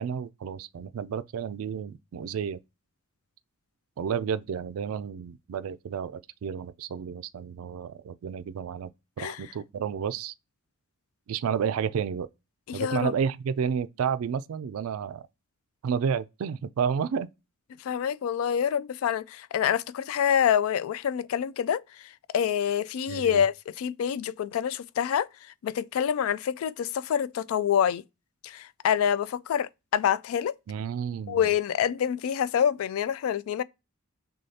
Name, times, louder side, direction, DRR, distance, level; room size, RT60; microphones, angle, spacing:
voice 1, 0.0-2.6 4.0-8.9 9.2-10.3 11.3-12.3 12.7-15.3 15.8-17.3 23.1-23.4 30.7-31.5, right 7 dB, 80° right, 0.3 m, -31 dB
voice 2, 12.7-13.1 17.8-21.8 22.3-25.3 25.6-28.0 28.4-30.5 31.3-33.6, left 8 dB, 80° left, 0.3 m, -26 dB
6.3 x 2.3 x 2.7 m
head